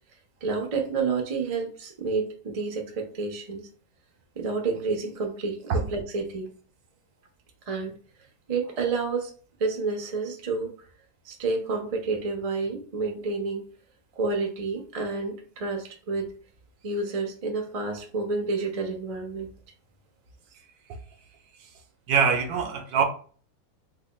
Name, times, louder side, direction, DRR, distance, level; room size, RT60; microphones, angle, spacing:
voice 1, 0.4-3.7 4.4-6.5 7.7-7.9 8.5-9.3 9.6-10.7 11.2-13.7 14.2-16.3 16.8-19.5, right 4 dB, 50° right, 2 dB, 0.4 m, -29 dB
voice 2, 22.1-23.0, right 6 dB, 70° right, 5 dB, 1.0 m, -23 dB
3.3 x 2.2 x 4.1 m, 0.42 s
omnidirectional pair, 1.8 m